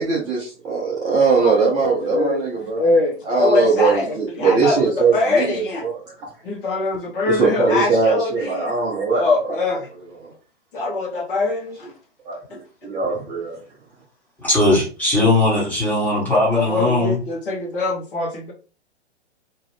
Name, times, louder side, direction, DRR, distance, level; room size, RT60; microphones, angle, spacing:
voice 1, 0.0-2.8 3.2-6.3 7.2-9.6 10.2-10.3 12.2-13.6, right 4 dB, 10° right, 0.5 m, -21 dB
voice 2, 2.0-2.4 2.8-4.0 4.4-5.8 6.4-8.7 9.1-9.9 10.7-11.9 16.5-18.5, left 3 dB, 50° left, 1.2 m, -22 dB
voice 3, 14.4-17.2, left 2 dB, 5° left, 1.3 m, -18 dB
2.9 x 2.5 x 3.1 m
figure-of-eight pair, 120°, 34 cm